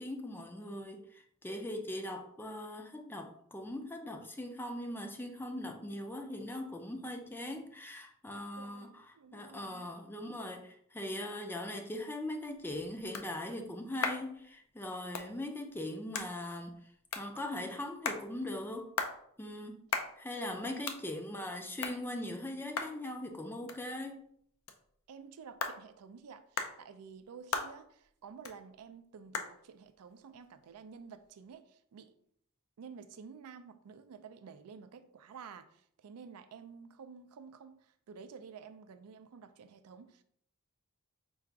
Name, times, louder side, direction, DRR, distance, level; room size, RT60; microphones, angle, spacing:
voice 1, 0.0-16.8 17.2-18.9 19.4-19.8 20.2-24.2, left 1 dB, 10° left, 0.4 m, -40 dB
voice 2, 8.4-9.9 20.6-20.9 25.1-32.1 32.8-40.2, right 6 dB, 85° right, 0.4 m, -51 dB
sound 1, 12.2-31.6, left 5 dB, 70° left, 0.5 m, -43 dB
3.9 x 2.5 x 4.6 m
head